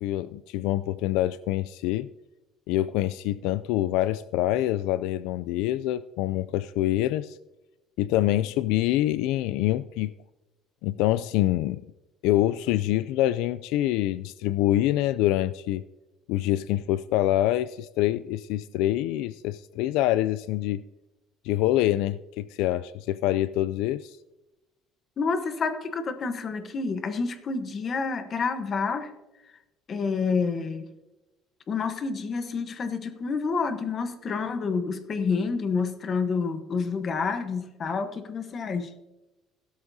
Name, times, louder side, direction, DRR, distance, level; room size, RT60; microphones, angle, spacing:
voice 1, 0.0-2.1 2.7-7.4 8.0-10.1 10.8-11.8 12.2-15.8 16.3-20.8 21.4-24.2, left 14 dB, 75° left, 16 dB, 0.3 m, -25 dB
voice 2, 25.2-29.1 29.9-30.9 31.7-38.9, left 5 dB, 30° left, 9 dB, 1.0 m, -28 dB
16.0 x 12.5 x 2.7 m, 1.0 s
cardioid pair, 170°, 0 cm